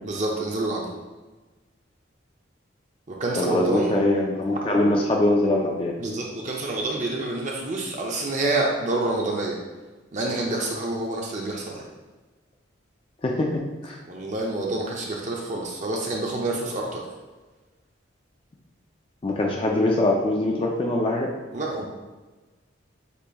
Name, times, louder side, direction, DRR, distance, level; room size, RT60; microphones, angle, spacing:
voice 1, 0.0-0.8 3.1-3.9 6.0-9.6 10.1-11.9 14.1-17.0 21.5-21.9, right 2 dB, 40° right, -2 dB, 0.6 m, -27 dB
voice 2, 3.4-5.9 13.2-14.0 19.2-21.3, left 1 dB, 30° left, 0 dB, 0.4 m, -23 dB
8.2 x 2.9 x 2.3 m, 1.2 s
head